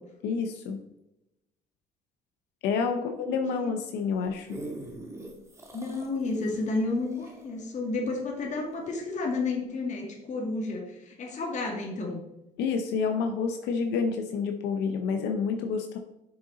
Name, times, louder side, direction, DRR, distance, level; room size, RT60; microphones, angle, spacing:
voice 1, 0.2-0.8 2.6-4.6 12.6-16.0, left 5 dB, 85° left, 5 dB, 0.8 m, -29 dB
voice 2, 2.9-3.7 5.7-12.2, left 3 dB, 45° left, 0 dB, 2.2 m, -32 dB
sound 1, 4.1-8.8 9.3-9.4, right 2 dB, 15° right, 1.7 m, -43 dB
6.9 x 6.6 x 4.0 m, 0.89 s
cardioid pair, 110°, 17 cm